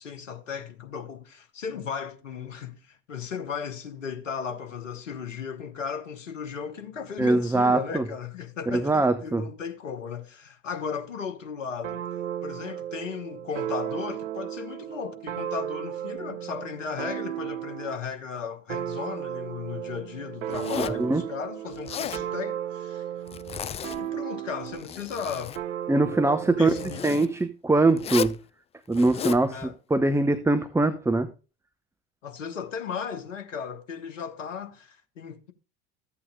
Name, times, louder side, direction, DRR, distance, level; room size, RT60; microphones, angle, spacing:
voice 1, 0.0-12.0 12.4-23.1 23.9-25.6 26.6-27.2 29.5-29.7 32.2-35.5, left 6 dB, 85° left, 1.2 m, -36 dB
voice 2, 7.2-8.0 8.7-9.5 20.8-21.2 25.9-26.7 27.0-28.4 28.9-29.6 29.9-31.3, right 2 dB, 5° right, 0.8 m, -22 dB
sound 1, 11.8-18.1 18.7-24.9 25.6-27.0, right 11 dB, 75° right, 0.9 m, -35 dB
Zipper (clothing), 20.5-21.1 21.7-22.3 23.3-24.0 24.6-25.6 26.7-27.3 28.0-28.4 28.9-29.5, left 8 dB, 20° left, 0.3 m, -34 dB
14.0 x 8.6 x 2.3 m
figure-of-eight pair, 70°, 37 cm